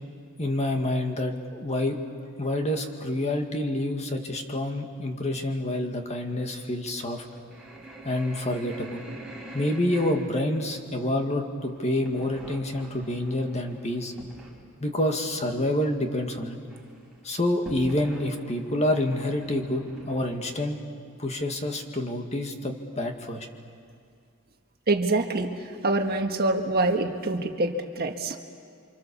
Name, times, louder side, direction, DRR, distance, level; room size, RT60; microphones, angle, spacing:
voice 1, 0.4-7.3 8.0-9.0 9.5-14.1 14.8-16.6 17.2-20.8 21.2-23.5, left 1 dB, 30° left, 4 dB, 2.1 m, -28 dB
sound 1, 6.9-14.6 15.0-15.1 15.5-15.6 15.8-16.3 16.6-20.4, right 1 dB, ahead, 5.3 m, -46 dB
voice 2, 24.9-25.5 25.8-28.4, right 2 dB, 50° right, 4 dB, 1.6 m, -25 dB
29.5 x 25.5 x 7.1 m, 2.3 s
head